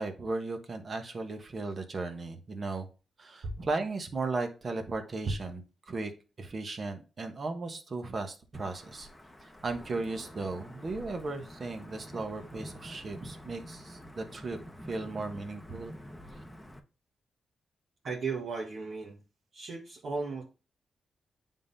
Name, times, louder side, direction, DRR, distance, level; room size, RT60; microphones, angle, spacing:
voice 1, 0.0-2.9 3.2-5.6 5.9-6.1 6.4-9.1 9.4-15.9, right 3 dB, 45° right, 6 dB, 1.2 m, -36 dB
Wind / Thunder / Rain, 8.5-16.8, equal, 5° left, 0.9 m, -48 dB
voice 2, 18.0-19.2 19.5-20.4, right 4 dB, 60° right, -4 dB, 1.4 m, -35 dB
9.4 x 3.7 x 2.7 m, 0.33 s
cardioid pair, 95°, 0 cm